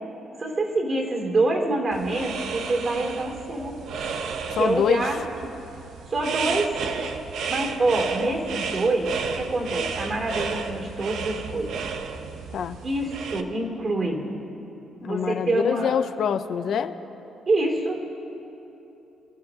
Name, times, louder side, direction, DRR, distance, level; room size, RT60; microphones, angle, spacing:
voice 1, 0.4-3.8 4.6-5.2 6.1-6.8 7.5-11.8 12.8-14.3 15.0-15.9 17.5-18.0, right 2 dB, 45° right, -1 dB, 2.8 m, -26 dB
sound 1, 1.9-13.4, right 5 dB, 75° right, 0.8 m, -33 dB
voice 2, 4.5-5.1 12.5-12.8 15.0-16.9, left 8 dB, 65° left, 10 dB, 0.6 m, -25 dB
27.0 x 13.0 x 2.9 m, 3.0 s
cardioid pair, 90°, 0 cm